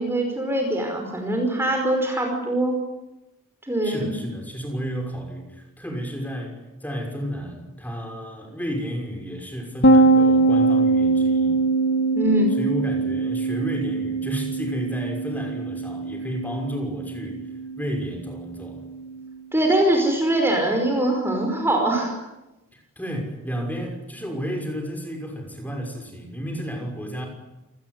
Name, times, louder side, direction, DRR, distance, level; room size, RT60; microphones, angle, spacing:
voice 1, 0.0-2.8 3.6-4.1 12.1-12.6 19.5-22.1, right 1 dB, 10° right, 2 dB, 5.1 m, -22 dB
voice 2, 3.8-11.6 12.6-17.5 17.8-18.8 22.7-27.3, equal, 5° left, 3 dB, 6.0 m, -32 dB
sound 1, 9.8-19.3, right 3 dB, 45° left, 1.6 m, -22 dB
28.5 x 19.5 x 9.6 m, 0.98 s
head